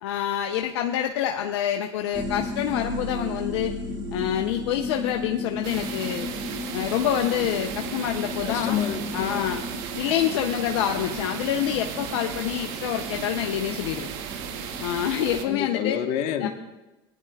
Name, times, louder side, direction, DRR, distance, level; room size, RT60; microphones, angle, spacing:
voice 1, 0.0-3.8 4.1-6.3 6.7-8.8 9.1-9.6 10.0-14.1 14.8-16.0 16.4-16.5, left 10 dB, 80° left, 4 dB, 0.6 m, -27 dB
sound 1, 2.1-15.9, left 2 dB, 30° right, 2.6 m, -35 dB
sound 2, 5.6-15.4, right 8 dB, 70° right, 1.1 m, -35 dB
voice 2, 8.4-9.5 15.4-16.5, left 9 dB, 60° left, 5 dB, 1.2 m, -28 dB
17.5 x 10.0 x 2.3 m, 1.1 s
hypercardioid pair, 80°, 14 cm